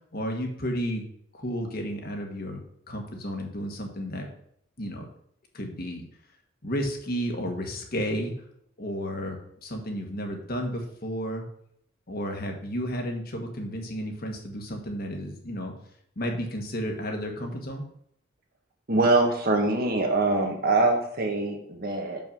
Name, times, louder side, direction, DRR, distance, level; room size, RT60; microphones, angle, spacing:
voice 1, 0.1-1.0 1.3-2.6 2.9-4.3 4.8-5.0 5.5-6.1 6.6-8.3 8.8-11.4 12.1-15.7 16.1-17.8, equal, 50° left, 2 dB, 1.5 m, -32 dB
voice 2, 18.9-22.2, right 2 dB, 50° right, 3 dB, 1.5 m, -23 dB
6.4 x 5.6 x 5.4 m, 0.70 s
head